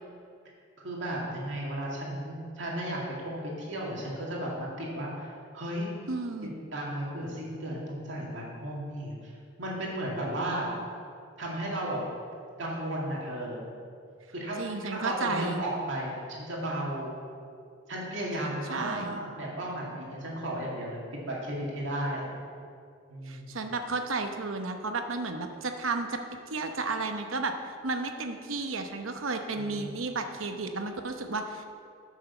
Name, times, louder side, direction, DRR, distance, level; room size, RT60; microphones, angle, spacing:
voice 1, 0.8-5.9 6.4-9.3 9.6-10.7 11.4-12.0 12.6-13.6 14.3-17.2 17.9-22.3 23.1-23.6 29.5-29.9, right 1 dB, 65° right, -4 dB, 2.3 m, -34 dB
voice 2, 6.1-6.6 14.6-15.6 18.7-19.2 23.3-26.2 26.5-31.6, right 3 dB, 85° right, 6 dB, 0.9 m, -33 dB
9.6 x 6.4 x 6.9 m, 2.3 s
head